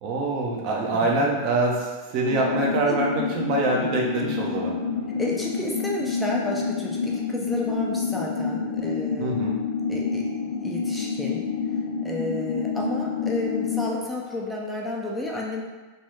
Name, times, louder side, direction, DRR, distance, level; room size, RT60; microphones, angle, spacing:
voice 1, 0.0-4.8 9.2-9.6, right 2 dB, 45° right, -2 dB, 0.6 m, -25 dB
voice 2, 0.9-1.3 2.9-3.0 5.2-9.5 9.9-10.3 10.6-15.6, left 1 dB, 5° left, -3 dB, 0.5 m, -31 dB
sound 1, 2.3-13.9, left 6 dB, 60° left, 0.3 m, -28 dB
3.0 x 2.7 x 3.3 m, 1.3 s
figure-of-eight pair, 90°, 0 cm